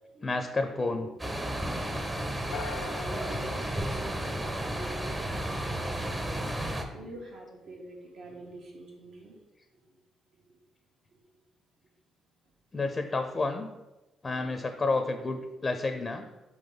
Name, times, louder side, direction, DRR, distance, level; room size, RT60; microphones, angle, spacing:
voice 1, 0.2-1.1 12.7-13.7 14.2-16.3, left 3 dB, 25° left, 7 dB, 0.5 m, -30 dB
voice 2, 0.8-1.1 1.5-9.4 9.7-10.0 10.3-10.6 11.1-11.2, right 2 dB, 70° right, -1 dB, 1.6 m, -46 dB
sound 1, 1.2-6.8, right 1 dB, 20° right, 0.8 m, -33 dB
sound 2, 2.5-4.8, left 6 dB, 85° left, 0.5 m, -43 dB
5.0 x 4.0 x 5.1 m, 1.1 s
cardioid pair, 90°, 0 cm